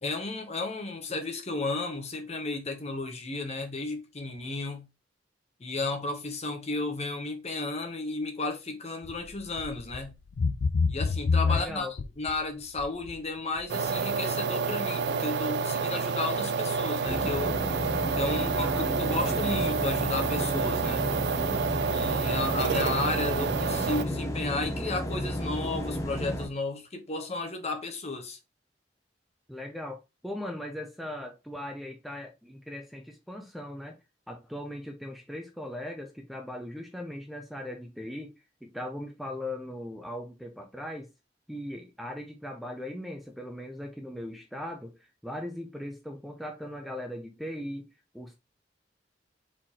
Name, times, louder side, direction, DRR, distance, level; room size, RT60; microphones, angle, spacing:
voice 1, 0.0-4.8 5.6-10.1 10.9-17.5 18.1-21.0 21.8-28.4, left 3 dB, 35° left, 1.0 m, -33 dB
sound 1, 9.0-9.3 9.6-10.0 10.4-12.3 12.8-13.2 13.6-13.7, left 4 dB, 80° left, 0.4 m, -26 dB
voice 2, 11.4-11.9 18.6-19.6 29.5-34.0 34.3-38.3 38.6-41.1 41.5-47.9 48.1-48.3, left 1 dB, ahead, 0.6 m, -39 dB
sound 2, 13.7-24.0, right 5 dB, 65° right, 0.3 m, -29 dB
sound 3, 17.0-26.5, equal, 15° left, 0.9 m, -33 dB
4.5 x 3.8 x 2.9 m
head